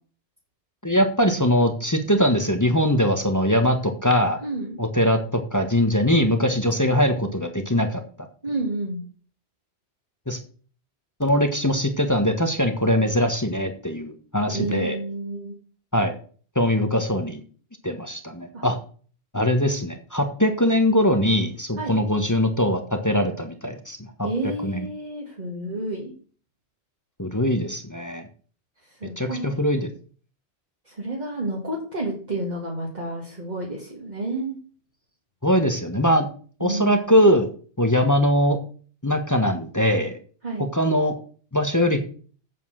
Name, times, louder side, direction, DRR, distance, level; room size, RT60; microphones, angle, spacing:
voice 1, 0.8-4.4 4.8-8.0 10.3-10.4 11.2-15.0 15.9-16.1 16.5-17.4 17.8-18.8 19.3-24.1 24.6-24.9 27.2-28.2 29.2-29.9 35.4-36.3 36.6-37.5 37.8-38.6 39.0-40.2 40.7-41.1 41.5-42.0, equal, 15° left, 6 dB, 1.4 m, -21 dB
voice 2, 4.4-4.8 8.4-9.0 14.5-15.5 18.5-18.6 21.8-21.9 24.2-26.1 28.8-29.5 30.8-34.6 36.6-37.0 40.4-40.7, right 2 dB, 40° right, -2 dB, 2.5 m, -30 dB
8.3 x 7.4 x 6.3 m, 0.41 s
omnidirectional pair, 1.1 m